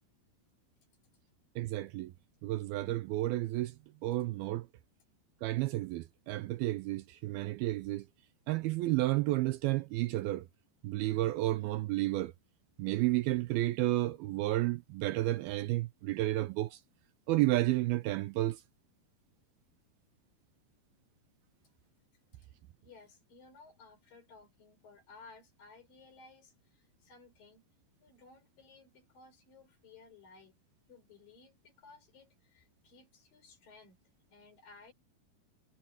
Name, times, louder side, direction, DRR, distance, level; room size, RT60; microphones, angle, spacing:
voice 1, 1.6-2.1 2.4-3.8 4.0-4.7 5.4-8.1 8.5-10.5 10.8-12.3 12.8-16.8 17.3-18.6, right 17 dB, 80° right, 2.4 m, -31 dB
voice 2, 22.8-27.6 28.0-30.5 30.9-34.0 34.3-34.9, left 4 dB, 55° left, 6.5 m, -58 dB
omnidirectional pair, 4.7 m